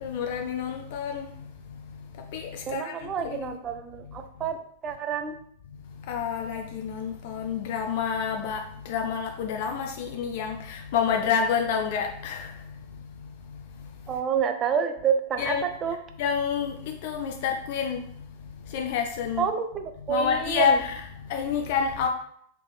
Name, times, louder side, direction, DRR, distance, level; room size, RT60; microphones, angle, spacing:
voice 1, 0.0-1.3 2.3-2.9 3.2-3.5 6.1-8.6 8.9-12.5 15.4-15.6 16.2-16.7 17.0-18.0 18.7-19.4 20.1-20.8 21.3-22.1, left 7 dB, 50° left, 3 dB, 0.4 m, -28 dB
voice 2, 2.7-5.4 14.1-16.0 19.4-20.8, right 7 dB, 25° right, 7 dB, 0.5 m, -28 dB
4.1 x 3.2 x 3.5 m, 0.67 s
figure-of-eight pair, 90°, 0 cm